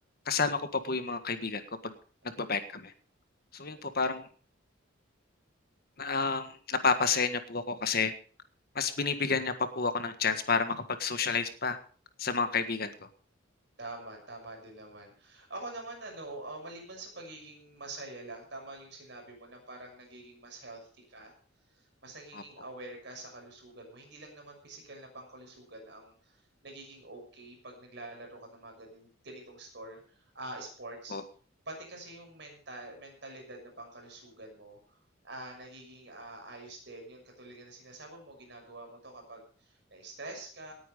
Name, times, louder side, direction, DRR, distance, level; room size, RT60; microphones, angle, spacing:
voice 1, 0.2-1.9 2.2-2.9 3.5-4.3 6.0-8.1 8.7-11.8 12.2-12.9 22.3-22.4 31.1-31.2, left 5 dB, 50° left, 9 dB, 1.6 m, -30 dB
voice 2, 2.2-2.5 3.6-4.0 13.8-21.3 21.7-31.2 31.7-35.0 35.2-40.7, right 2 dB, 60° right, 2 dB, 6.2 m, -46 dB
18.5 x 9.2 x 5.2 m, 0.42 s
head